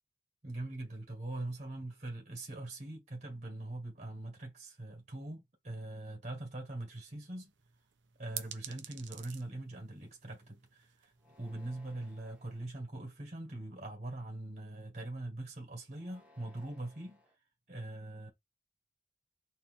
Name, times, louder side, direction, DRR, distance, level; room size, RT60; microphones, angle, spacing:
voice 1, 0.4-7.5 8.2-11.1 11.4-17.2 17.7-18.3, right 2 dB, 40° right, 1.8 m, -42 dB
sound 1, 7.4-12.6, right 11 dB, 80° right, 0.8 m, -50 dB
sound 2, 11.2-12.6 13.3-13.9 15.8-17.4, left 1 dB, 10° right, 1.4 m, -64 dB
4.3 x 3.3 x 3.5 m
head